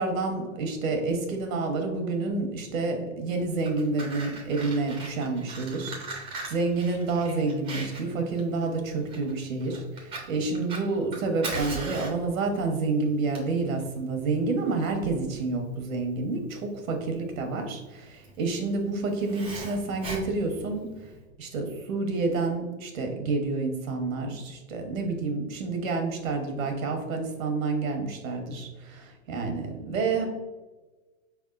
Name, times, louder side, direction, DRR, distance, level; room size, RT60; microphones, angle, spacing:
voice 1, 0.0-20.9 21.4-30.3, right 3 dB, 85° right, 4 dB, 1.2 m, -29 dB
Fire, 3.4-21.2, right 3 dB, 15° right, 0.6 m, -40 dB
5.0 x 3.5 x 2.5 m, 1.2 s
supercardioid pair, 150°, 40 cm